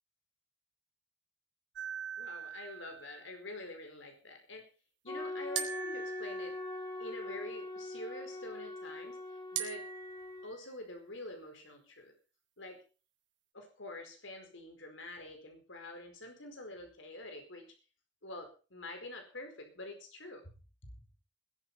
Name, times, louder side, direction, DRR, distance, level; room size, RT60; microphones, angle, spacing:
sound 1, 1.8-3.2 5.6-7.2 9.6-10.6, right 8 dB, 65° right, 3.6 m, -41 dB
voice 1, 2.2-4.7 5.0-6.6 7.0-9.9 10.4-12.1 12.6-12.8 13.5-17.7 18.2-20.5, left 2 dB, 80° left, 5 dB, 4.7 m, -47 dB
sound 2, 5.1-10.5, left 2 dB, 20° left, 3.8 m, -42 dB
20.5 x 8.8 x 5.5 m, 0.35 s
head